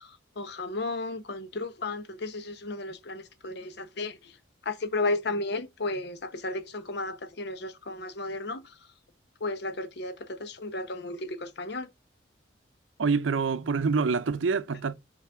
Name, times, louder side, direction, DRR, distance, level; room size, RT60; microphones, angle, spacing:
voice 1, 0.4-4.1 4.7-8.6 9.4-11.9, left 2 dB, 60° left, 0.8 m, -33 dB
voice 2, 13.0-14.9, right 5 dB, 85° right, 0.6 m, -26 dB
5.8 x 4.0 x 4.8 m
head